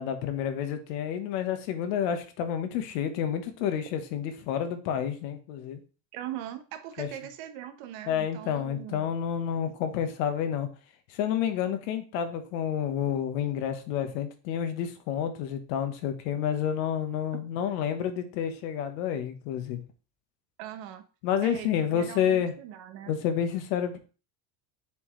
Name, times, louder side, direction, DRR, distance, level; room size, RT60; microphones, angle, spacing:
voice 1, 0.0-5.8 7.0-7.1 8.1-10.7 11.1-19.8 21.2-22.5 23.1-24.0, left 9 dB, 80° left, 8 dB, 1.3 m, -29 dB
voice 2, 6.1-9.1 17.3-17.4 20.6-21.0 21.4-23.1, right 11 dB, 65° right, 8 dB, 1.2 m, -40 dB
7.1 x 4.6 x 3.2 m, 0.35 s
supercardioid pair, 130°, 49 cm